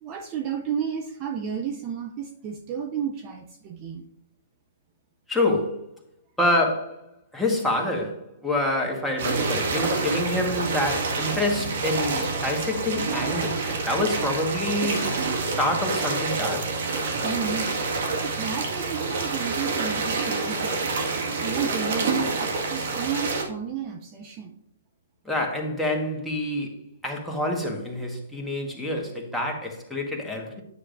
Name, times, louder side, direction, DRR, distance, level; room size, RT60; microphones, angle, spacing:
voice 1, 0.0-4.0 17.2-20.9 21.4-24.6, right 7 dB, 30° right, 4 dB, 0.6 m, -32 dB
voice 2, 5.3-5.8 6.4-7.0 7.3-15.1 15.6-16.7 25.2-26.8 27.0-30.6, left 1 dB, 5° left, 0 dB, 1.5 m, -27 dB
sound 1, 9.2-23.4, right 3 dB, 60° right, 1.8 m, -27 dB
9.7 x 6.5 x 2.6 m, 0.78 s
hypercardioid pair, 130°, 0 cm